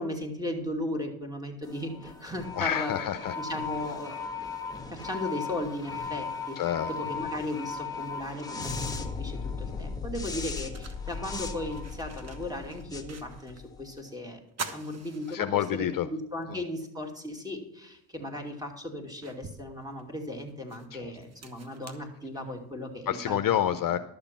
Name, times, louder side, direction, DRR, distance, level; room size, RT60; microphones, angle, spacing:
voice 1, 0.0-3.1 3.4-4.2 4.9-6.6 6.9-14.4 14.7-15.5 15.7-23.4, left 1 dB, 10° right, 3 dB, 2.5 m, -36 dB
sound 1, 1.6-14.0, left 5 dB, 5° left, 1.5 m, -37 dB
voice 2, 2.5-3.4 6.6-6.9 15.3-16.1 16.5-16.7 20.9-21.1 23.1-24.0, left 11 dB, 45° left, 9 dB, 0.7 m, -28 dB
sound 2, 9.7-9.8 10.3-13.7 14.0-14.1 14.5-16.0 16.4-16.5 17.9-18.0 18.6-22.8, right 3 dB, 30° right, 1.3 m, -45 dB
12.0 x 6.9 x 5.9 m, 0.79 s
supercardioid pair, 85°, 50 cm